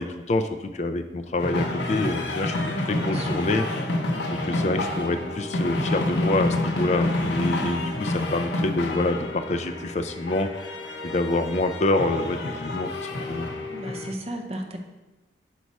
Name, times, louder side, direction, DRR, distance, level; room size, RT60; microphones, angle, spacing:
voice 1, 0.0-3.7 4.3-10.5 11.0-13.6, left 2 dB, 40° left, 7 dB, 0.4 m, -27 dB
sound 1, 1.4-14.1, left 1 dB, 85° left, 0.9 m, -28 dB
voice 2, 2.7-3.3 13.7-14.8, right 1 dB, 35° right, 4 dB, 0.7 m, -34 dB
7.4 x 4.6 x 4.1 m, 1.1 s
head